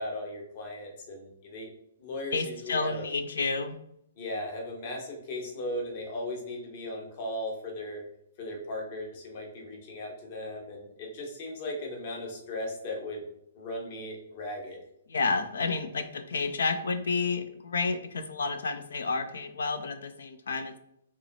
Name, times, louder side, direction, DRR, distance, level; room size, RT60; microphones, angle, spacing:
voice 1, 0.0-1.7 2.0-3.0 4.2-8.0 8.4-13.2 13.5-14.8, left 1 dB, 45° left, 0 dB, 1.2 m, -37 dB
voice 2, 2.3-3.8 15.1-20.8, left 4 dB, 75° left, 10 dB, 0.4 m, -30 dB
4.6 x 3.0 x 2.7 m, 0.77 s
hypercardioid pair, 130°, 0 cm